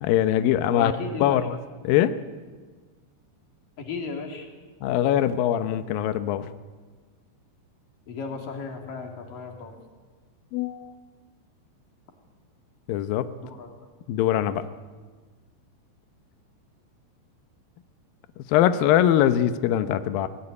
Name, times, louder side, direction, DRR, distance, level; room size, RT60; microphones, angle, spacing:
voice 1, 0.0-0.9 1.2-1.6 1.8-2.2 4.8-6.5 10.5-10.9 12.9-13.3 14.1-14.6 18.5-20.3, left 11 dB, 85° left, 10 dB, 2.0 m, -22 dB
voice 2, 0.6-1.4 3.8-4.5 8.1-9.7 13.3-13.7, left 4 dB, 50° left, 3 dB, 4.2 m, -34 dB
22.5 x 18.5 x 9.8 m, 1.4 s
omnidirectional pair, 5.3 m